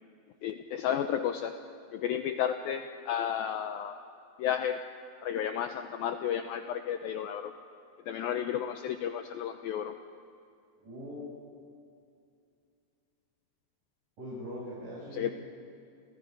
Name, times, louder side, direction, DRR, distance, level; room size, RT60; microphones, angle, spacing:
voice 1, 0.4-1.5 1.9-4.0 4.4-4.8 5.2-7.5 8.1-10.0 15.1-15.3, left 9 dB, 85° left, 7 dB, 2.1 m, -32 dB
voice 2, 10.8-11.3 14.2-15.3, equal, 45° right, -9 dB, 8.6 m, -41 dB
30.0 x 28.0 x 5.3 m, 2.4 s
omnidirectional pair, 5.1 m